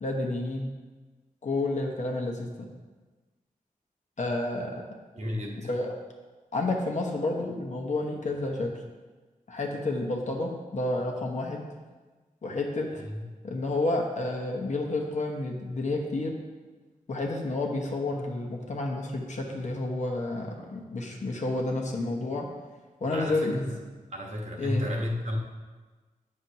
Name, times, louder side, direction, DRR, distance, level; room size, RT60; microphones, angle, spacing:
voice 1, 0.0-0.7 1.4-2.7 4.2-4.8 5.6-5.9 6.5-8.7 9.5-11.7 12.4-12.9 13.4-16.3 17.1-22.5 23.0-23.8 24.6-24.8, left 2 dB, 55° left, 0 dB, 1.0 m, -30 dB
voice 2, 5.1-5.7 13.0-13.3 23.1-23.7 24.1-25.4, left 1 dB, 50° right, -1 dB, 1.2 m, -33 dB
9.1 x 6.7 x 2.8 m, 1.3 s
wide cardioid pair, 135°, 14 cm